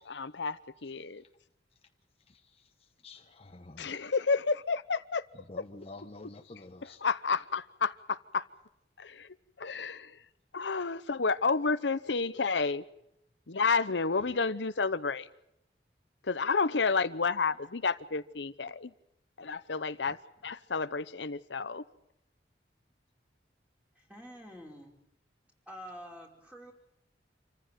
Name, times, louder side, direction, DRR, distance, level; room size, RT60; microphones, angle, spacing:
voice 1, 0.1-1.2 3.8-5.2 6.8-8.4 9.0-9.3 9.6-10.2 10.5-12.8 13.5-15.3 16.2-18.9 19.4-20.2 20.4-21.8, left 4 dB, 90° left, 12 dB, 0.9 m, -30 dB
voice 2, 2.3-2.7 3.0-3.9 5.5-7.0 20.1-20.2, left 2 dB, 35° left, 6 dB, 1.1 m, -49 dB
voice 3, 23.9-24.9 25.7-26.7, equal, 10° right, 0 dB, 5.0 m, -47 dB
27.0 x 15.0 x 9.2 m, 0.80 s
head